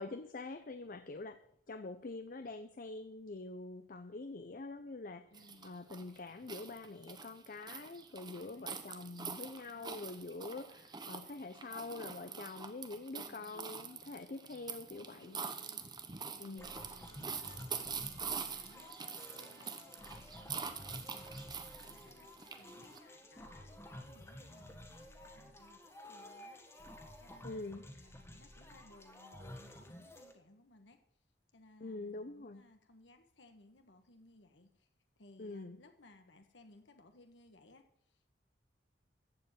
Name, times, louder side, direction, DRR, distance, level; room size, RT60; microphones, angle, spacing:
voice 1, 0.0-1.4 1.7-5.3 5.6-15.4 16.4-16.7 27.4-27.8 31.8-32.6 35.4-35.8, left 3 dB, 50° left, 10 dB, 0.6 m, -45 dB
voice 2, 5.3-5.8 8.3-8.9 9.7-10.2 13.1-13.6 15.4-22.3 22.6-31.2 31.5-34.9 35.2-38.3, left 2 dB, 80° left, 6 dB, 1.3 m, -63 dB
sound 1, 5.3-23.0, right 6 dB, 25° right, 1.0 m, -45 dB
sound 2, 16.6-30.3, left 1 dB, 15° left, 1.5 m, -52 dB
14.5 x 5.2 x 9.0 m, 0.70 s
head